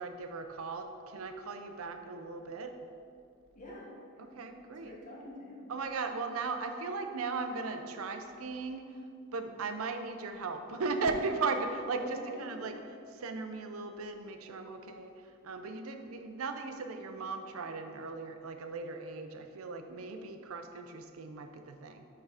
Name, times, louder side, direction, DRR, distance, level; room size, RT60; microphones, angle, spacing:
voice 1, 0.0-2.8 4.2-5.0 5.7-8.9 9.3-12.7 13.1-15.1 15.4-22.1, right 4 dB, 90° right, 7 dB, 0.5 m, -37 dB
voice 2, 3.5-5.6 12.0-12.5, left 1 dB, 40° left, -3 dB, 1.2 m, -47 dB
5.5 x 4.7 x 4.9 m, 2.4 s
head